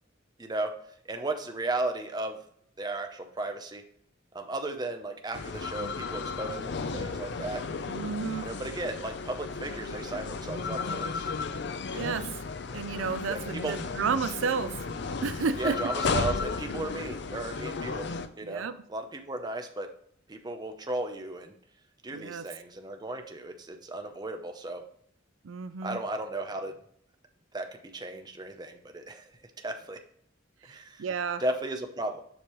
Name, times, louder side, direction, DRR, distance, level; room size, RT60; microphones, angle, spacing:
voice 1, 0.4-0.7 1.0-2.4 2.8-3.8 4.3-7.7 8.4-11.3 11.9-12.2 13.3-13.8 15.6-18.1 18.4-18.6 18.9-19.9 20.3-21.5 22.0-24.8 25.8-26.8 27.5-29.2 29.6-30.0 30.6-31.0 31.4-32.2, right 2 dB, 20° right, 5 dB, 0.7 m, -35 dB
sound 1, 5.3-18.3, left 4 dB, 60° left, 0.5 m, -34 dB
voice 2, 7.9-8.5 11.9-12.4 12.7-14.9 15.2-15.8 18.4-18.8 22.1-22.5 25.4-26.0 30.7-31.4, right 5 dB, 85° right, 12 dB, 0.4 m, -32 dB
7.3 x 5.2 x 3.1 m, 0.66 s
head